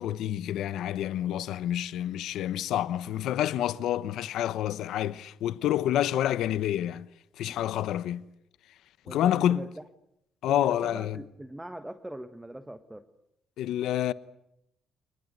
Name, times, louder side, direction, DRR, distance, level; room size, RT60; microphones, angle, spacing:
voice 1, 0.0-7.1 7.4-8.3 9.1-9.6 10.4-11.2 13.6-14.1, left 12 dB, 85° left, 1.0 m, -28 dB
voice 2, 9.0-9.7 10.5-13.0, right 1 dB, 10° right, 1.5 m, -41 dB
29.0 x 20.5 x 8.3 m
cardioid pair, 90°, 0 cm